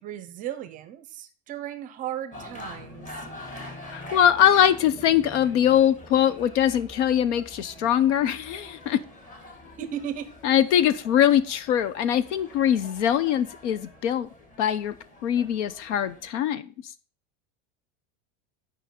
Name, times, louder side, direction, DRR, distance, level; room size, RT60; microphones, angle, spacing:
voice 1, 0.0-3.1 9.8-10.3, right 10 dB, 25° right, 13 dB, 0.6 m, -35 dB
sound 1, 2.3-16.3, left 1 dB, 20° left, 1.6 m, -45 dB
voice 2, 3.9-9.0 10.4-14.3 14.6-14.9 15.2-16.7, left 10 dB, 80° left, 16 dB, 0.9 m, -22 dB
9.0 x 5.4 x 5.2 m, 0.37 s
supercardioid pair, 175°, 35 cm